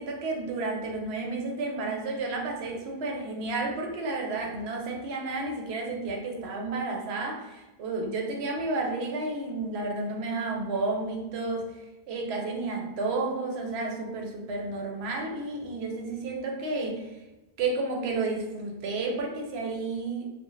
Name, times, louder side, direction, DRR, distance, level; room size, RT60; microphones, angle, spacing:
voice 1, 0.0-17.2 17.6-20.3, right 3 dB, 75° right, 0 dB, 0.8 m, -31 dB
2.5 x 2.1 x 3.0 m, 1.0 s
omnidirectional pair, 1.1 m